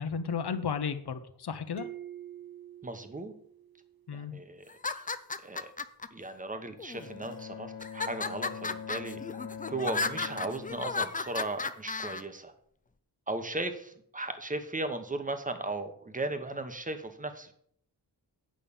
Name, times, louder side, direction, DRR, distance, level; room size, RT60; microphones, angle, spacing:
voice 1, 0.0-1.9 4.1-4.3, left 6 dB, 70° left, 10 dB, 0.9 m, -33 dB
sound 1, 1.8-4.3, right 12 dB, 60° right, 0.8 m, -47 dB
voice 2, 2.8-3.3 4.1-4.6 4.9-5.1 5.4-5.7 6.1-9.2 9.7-12.5 13.3-17.5, right 2 dB, 20° right, 8 dB, 1.0 m, -36 dB
sound 2, 4.7-6.1 6.8-7.3 7.8-12.2, left 4 dB, 20° left, 0.4 m, -34 dB
Bowed string instrument, 6.9-11.9, left 6 dB, 50° left, 1.4 m, -44 dB
8.8 x 5.6 x 7.0 m, 0.66 s
wide cardioid pair, 130°, 41 cm